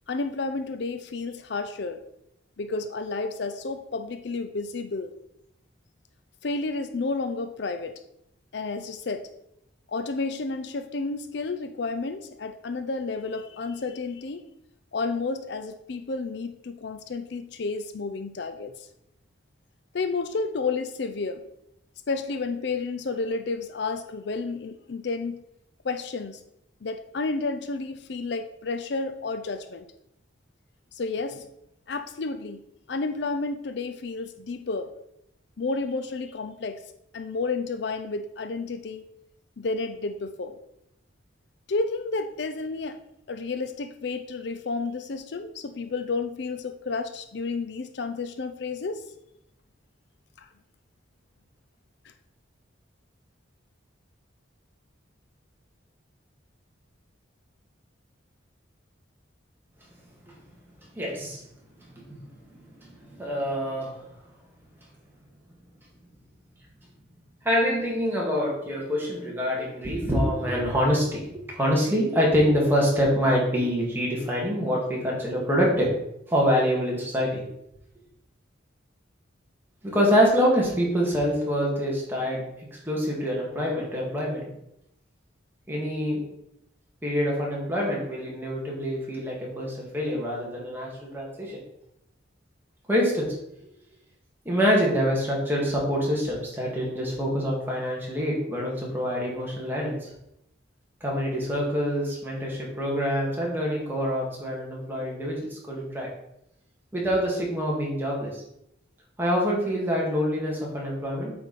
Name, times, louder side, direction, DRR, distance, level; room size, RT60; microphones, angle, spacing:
voice 1, 0.1-2.0 2.6-5.1 6.4-8.0 8.5-9.2 9.9-14.4 14.9-18.9 19.9-21.4 22.1-25.4 25.8-26.4 26.8-29.9 30.9-31.5 31.9-32.6 32.9-34.9 35.6-36.8 37.1-39.1 39.6-40.6 41.7-43.0 43.3-49.0 50.4-50.5, left 3 dB, 60° left, 8 dB, 0.5 m, -31 dB
voice 2, 61.0-61.4 61.9-62.2 62.8-64.1 67.4-75.9 76.3-77.4 79.8-82.4 82.7-84.5 85.7-86.2 87.0-91.6 92.9-93.3 94.5-100.1 101.0-106.1 106.9-108.4 109.2-111.3, equal, 10° right, -4 dB, 2.0 m, -26 dB
8.2 x 4.8 x 4.1 m, 0.80 s
head